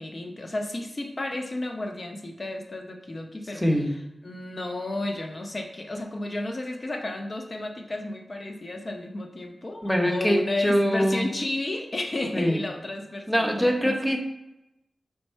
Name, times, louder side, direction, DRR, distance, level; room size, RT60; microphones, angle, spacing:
voice 1, 0.0-3.6 4.2-14.0, left 2 dB, 45° left, 3 dB, 0.6 m, -32 dB
voice 2, 3.6-3.9 9.8-11.3 12.3-12.6 13.3-14.2, equal, 10° left, 2 dB, 0.8 m, -23 dB
4.5 x 2.1 x 4.3 m, 0.91 s
cardioid pair, 55°, 0 cm